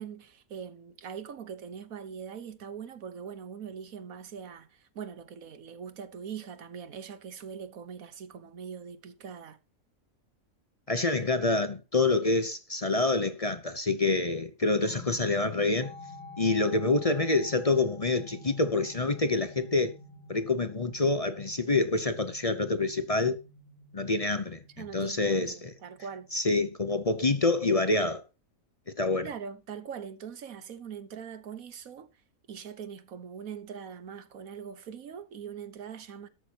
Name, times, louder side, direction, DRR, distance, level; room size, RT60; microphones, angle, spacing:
voice 1, 0.0-9.6 24.8-26.3 29.2-32.1 32.5-36.3, right 7 dB, 85° right, 1.5 m, -42 dB
voice 2, 10.9-15.9 16.4-19.9 20.3-23.4 23.9-25.7 26.3-28.2 29.0-29.3, left 3 dB, 30° left, 0.8 m, -27 dB
sound 1, 14.8-27.4, left 2 dB, 80° left, 3.5 m, -50 dB
13.0 x 12.5 x 2.9 m
omnidirectional pair, 1.4 m